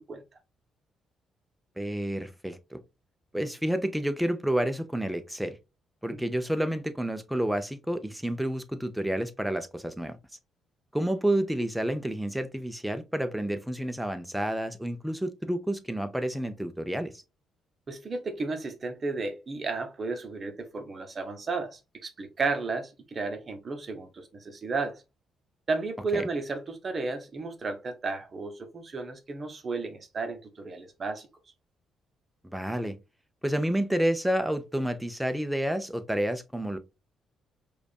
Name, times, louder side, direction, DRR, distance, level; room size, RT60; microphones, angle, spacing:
voice 1, 1.8-2.8 3.3-5.6 6.0-10.2 10.9-17.1 26.1-26.3 32.4-33.0 33.4-36.8, right 1 dB, 5° right, 0.6 m, -29 dB
voice 2, 17.9-25.0 25.7-31.3, right 3 dB, 40° right, 0.8 m, -33 dB
4.9 x 2.4 x 2.4 m
cardioid pair, 90°, 0 cm